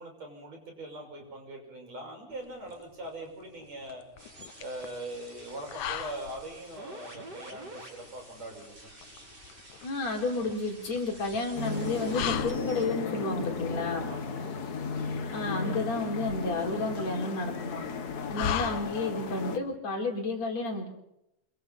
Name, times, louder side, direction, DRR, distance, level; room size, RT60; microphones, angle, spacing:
voice 1, 0.0-4.0 4.6-8.9 14.0-15.1 18.7-18.8, right 1 dB, 60° right, 2 dB, 7.3 m, -42 dB
sound 1, 2.3-19.4, left 10 dB, 80° left, 2.5 m, -40 dB
sound 2, 4.2-12.8, right 1 dB, 30° right, 6.9 m, -49 dB
voice 2, 9.8-14.1 15.3-17.8 18.3-20.9, left 2 dB, 65° left, 1 dB, 5.1 m, -31 dB
sound 3, 11.5-19.6, left 5 dB, 45° left, 1.4 m, -34 dB
27.0 x 22.5 x 5.6 m, 0.85 s
omnidirectional pair, 3.4 m